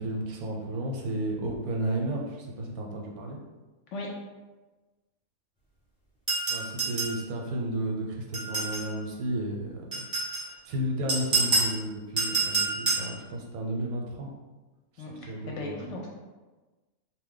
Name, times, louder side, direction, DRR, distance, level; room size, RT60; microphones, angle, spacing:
voice 1, 0.0-3.4 6.5-9.8 10.3-14.3 15.3-15.7, right 1 dB, 85° right, 0 dB, 1.1 m, -33 dB
sound 1, 6.3-7.2 8.3-8.9 9.9-10.4 11.1-11.7 12.2-13.1, right 3 dB, 5° right, 0.9 m, -27 dB
voice 2, 15.0-16.1, left 2 dB, 70° left, -1 dB, 0.8 m, -37 dB
2.6 x 2.2 x 3.7 m, 1.2 s
omnidirectional pair, 1.5 m